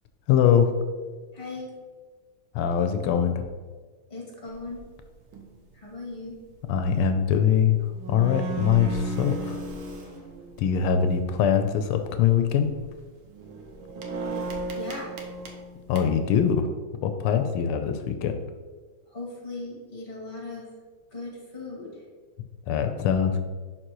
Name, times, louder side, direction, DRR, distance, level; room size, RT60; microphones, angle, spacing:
voice 1, 0.3-0.7 2.5-3.5 6.7-7.8 8.1-9.6 10.6-12.7 15.9-16.7 17.0-18.4 22.7-23.4, left 8 dB, 90° left, 7 dB, 1.5 m, -22 dB
voice 2, 1.3-1.7 4.1-4.8 5.7-6.4 14.7-15.1 19.1-20.7 21.1-22.0, left 2 dB, 25° left, -3 dB, 2.2 m, -38 dB
sound 1, 4.5-4.8 5.3-5.6 7.5-7.6 7.8-11.1 12.0-12.3 12.7-12.9 13.3-16.5, right 3 dB, 75° right, 1.6 m, -35 dB
11.0 x 4.2 x 3.0 m, 1.4 s
omnidirectional pair, 2.3 m